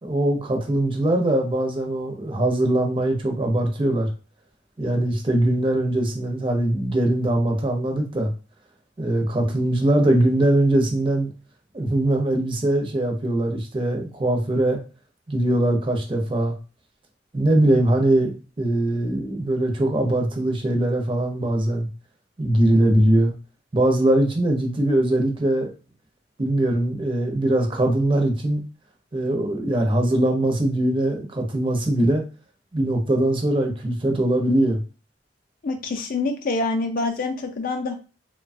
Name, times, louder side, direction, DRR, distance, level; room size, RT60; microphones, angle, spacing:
voice 1, 0.0-4.1 4.8-8.3 9.0-11.3 11.7-14.8 15.3-16.5 17.3-18.3 18.6-21.9 22.4-23.3 23.7-25.7 26.4-28.6 29.1-32.2 32.7-34.8, right 1 dB, 30° right, 2 dB, 0.6 m, -21 dB
voice 2, 35.6-37.9, left 3 dB, 50° left, 5 dB, 0.4 m, -26 dB
3.0 x 2.2 x 2.5 m, 0.34 s
head